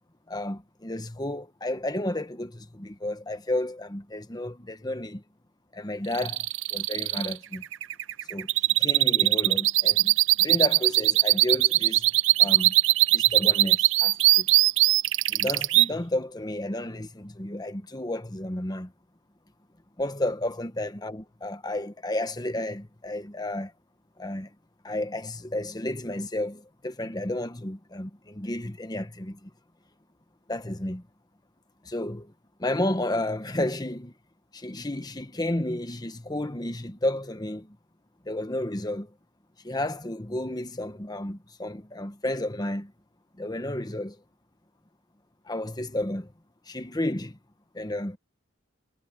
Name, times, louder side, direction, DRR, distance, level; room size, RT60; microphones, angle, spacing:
voice 1, 0.3-5.2 5.7-7.6 8.3-8.5 8.8-12.1 12.4-12.7 13.1-14.5 15.3-18.9 20.0-23.7 24.2-24.5 24.8-29.5 30.5-31.0 31.8-32.3 32.6-34.1 34.5-37.8 38.2-39.1 39.6-42.9 43.4-44.2 45.5-46.3 46.7-47.4 47.7-48.2, left 1 dB, 20° left, 1.3 m, -32 dB
sound 1, 6.1-15.9, right 17 dB, 75° right, 0.5 m, -21 dB
head